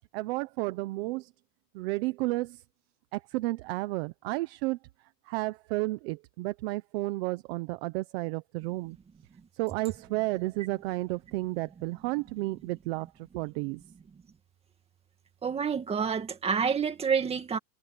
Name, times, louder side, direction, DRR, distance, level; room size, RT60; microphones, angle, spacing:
voice 1, 0.1-1.3 1.7-2.6 3.1-4.8 5.3-9.0 9.6-13.8, right 21 dB, 40° right, 0.8 m, -32 dB
voice 2, 15.4-17.6, right 6 dB, 10° right, 2.0 m, -28 dB
supercardioid pair, 165°, 50 cm